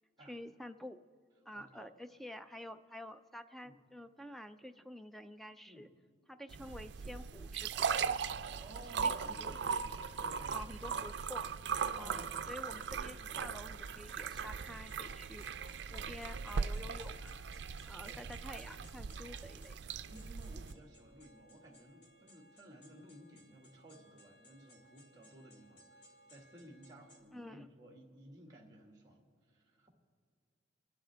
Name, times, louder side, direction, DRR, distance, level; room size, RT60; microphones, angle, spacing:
voice 1, 0.3-1.0 1.5-5.9 6.3-8.2 9.0-9.6 10.5-11.5 11.9-15.4 15.9-17.5 17.8-19.8 27.3-27.7, left 1 dB, ahead, 9 dB, 0.4 m, -49 dB
voice 2, 1.5-1.9 3.6-3.8 5.7-5.9 8.6-9.9 10.2-10.6 12.0-12.3 18.1-18.2 20.1-30.0, right 1 dB, 20° right, -1 dB, 1.8 m, -56 dB
sound 1, 6.5-20.7, right 6 dB, 70° right, 0.4 m, -39 dB
sound 2, 12.8-27.2, equal, 70° left, 2.3 m, -63 dB
29.0 x 11.5 x 3.4 m, 2.1 s
head